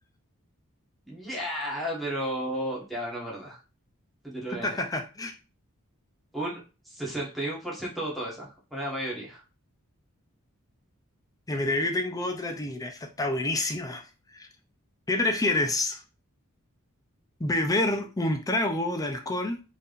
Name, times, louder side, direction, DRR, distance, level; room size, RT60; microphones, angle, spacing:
voice 1, 1.1-3.6 4.2-4.8 6.3-6.6 6.9-9.4, right 1 dB, ahead, -5 dB, 1.4 m, -33 dB
voice 2, 4.5-5.3 11.5-14.0 14.3-14.5 15.1-16.0 17.4-19.6, left 2 dB, 15° left, 4 dB, 0.5 m, -28 dB
4.4 x 3.5 x 2.5 m, 0.32 s
head